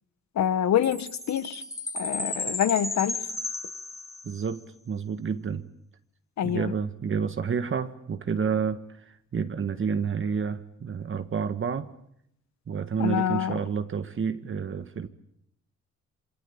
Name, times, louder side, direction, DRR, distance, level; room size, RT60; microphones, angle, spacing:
voice 1, 0.3-1.6 1.9-3.2 6.4-6.7 13.0-13.5, left 10 dB, 65° left, 13 dB, 1.7 m, -26 dB
Chime, 0.8-4.5, left 2 dB, 10° left, 3.0 m, -34 dB
voice 2, 4.2-4.6 4.9-5.6 6.4-11.9 12.7-15.1, right 6 dB, 40° right, 9 dB, 1.6 m, -29 dB
27.5 x 23.5 x 8.7 m, 0.76 s
cardioid pair, 90°, 30 cm